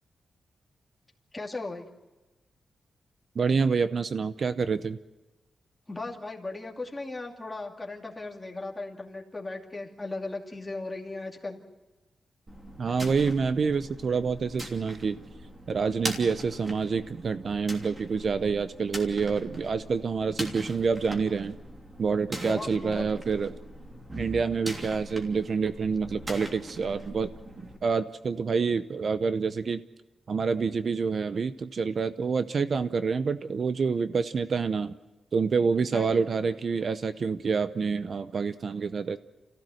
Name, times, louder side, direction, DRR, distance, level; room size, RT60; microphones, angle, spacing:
voice 1, 1.3-1.8 5.9-11.6 22.3-23.1 35.9-36.3, left 2 dB, 15° left, 0 dB, 2.6 m, -37 dB
voice 2, 3.4-5.0 12.8-15.2 15.7-21.6 22.0-23.6 24.2-27.3 27.8-29.8 30.3-34.9 35.3-39.2, right 5 dB, 50° right, 12 dB, 0.7 m, -27 dB
sound 1, 12.5-27.8, right 1 dB, 20° right, 3.0 m, -41 dB
29.0 x 15.5 x 7.7 m, 1.1 s
wide cardioid pair, 130°, 0 cm